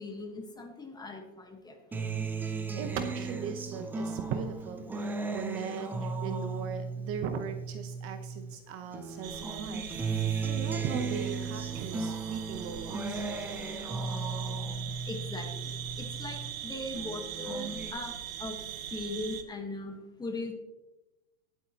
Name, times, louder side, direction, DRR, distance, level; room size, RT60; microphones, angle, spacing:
voice 1, 0.0-2.0 15.0-18.1 18.4-18.6 18.9-20.5, left 2 dB, 10° left, 4 dB, 1.3 m, -39 dB
Acoustic guitar, 1.9-8.6 8.9-16.6 17.0-17.9, right 4 dB, 5° right, 0.3 m, -36 dB
voice 2, 2.4-13.2, right 7 dB, 35° right, 7 dB, 0.9 m, -39 dB
sound 1, 9.2-19.4, right 10 dB, 85° right, 1.2 m, -41 dB
17.5 x 8.4 x 2.9 m, 1.0 s
supercardioid pair, 135°, 40 cm